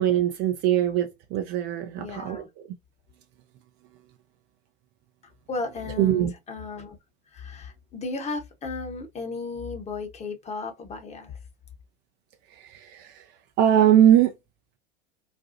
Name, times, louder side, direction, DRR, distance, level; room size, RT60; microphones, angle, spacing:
voice 1, 0.0-2.4 6.0-6.3 12.7-13.1 13.6-14.3, right 10 dB, 30° right, 0.5 m, -21 dB
voice 2, 2.0-2.5 5.5-7.0 7.3-11.4, left 3 dB, 20° left, 1.0 m, -35 dB
4.2 x 2.3 x 2.6 m
figure-of-eight pair, 85°, 34 cm